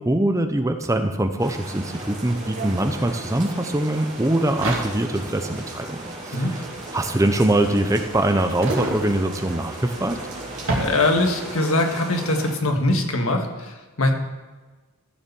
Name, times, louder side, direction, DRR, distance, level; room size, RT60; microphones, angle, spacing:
voice 1, 0.0-6.6 6.9-10.2, right 1 dB, 15° right, 7 dB, 0.6 m, -23 dB
sound 1, 0.8-0.9 1.1-11.6, right 2 dB, 60° right, 2.9 m, -33 dB
sound 2, 1.4-12.5, right 2 dB, 35° right, 3.0 m, -37 dB
voice 2, 10.8-14.1, left 2 dB, 75° left, 3 dB, 1.7 m, -22 dB
14.5 x 7.1 x 7.0 m, 1.3 s
head